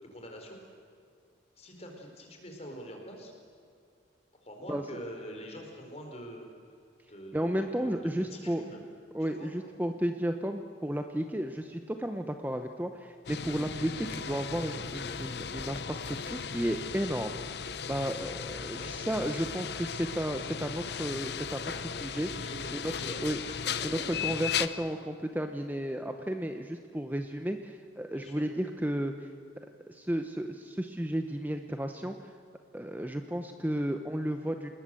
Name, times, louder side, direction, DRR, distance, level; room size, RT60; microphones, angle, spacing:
voice 1, 0.1-0.6 1.6-3.3 4.4-6.5 7.1-7.9 8.3-8.8 9.2-9.5 18.7-18.9 21.7-21.9 22.2-23.4 28.1-28.4, equal, 35° left, 2 dB, 4.7 m, -45 dB
voice 2, 7.3-8.6 9.1-21.7 22.0-22.3 22.7-22.8 23.2-23.4 23.8-29.3 29.9-32.3 32.7-34.7, equal, 10° right, 6 dB, 0.8 m, -33 dB
sound 1, 13.3-24.7, left 7 dB, 60° left, 0.8 m, -36 dB
28.5 x 20.0 x 7.8 m, 2.4 s
head